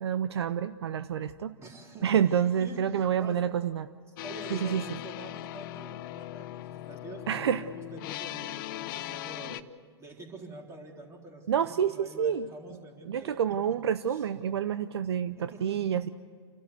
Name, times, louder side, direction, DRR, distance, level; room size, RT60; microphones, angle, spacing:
voice 1, 0.0-1.5 2.0-3.9 4.5-4.8 7.3-7.6 11.5-12.5 13.1-16.1, right 8 dB, 65° right, 12 dB, 0.6 m, -28 dB
voice 2, 1.6-3.4 4.2-13.4 14.1-14.3 15.4-15.8, right 2 dB, 20° right, 1 dB, 3.7 m, -46 dB
sound 1, 4.2-9.6, left 14 dB, 45° left, 0.8 m, -39 dB
29.5 x 12.5 x 8.2 m, 2.1 s
hypercardioid pair, 110°, 14 cm